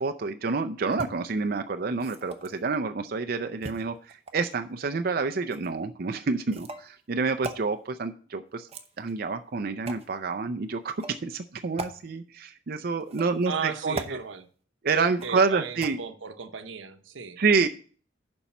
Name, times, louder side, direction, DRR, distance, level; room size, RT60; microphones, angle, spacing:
voice 1, 0.0-8.7 9.0-14.2 14.8-16.0 17.4-17.7, right 4 dB, 50° right, 0.5 m, -28 dB
sound 1, 0.9-1.1 1.9-2.6 3.6-4.5 5.5-5.7 6.5-6.9 7.4-7.6 8.6-9.2 9.8-10.1 10.9-11.2 11.8-11.9 13.0-13.5 13.9-14.2 15.2-15.5 15.8-15.9, right 2 dB, 35° right, 0.8 m, -38 dB
voice 2, 13.5-14.5 15.2-17.4, right 6 dB, 90° right, 0.8 m, -36 dB
7.2 x 5.4 x 7.0 m
head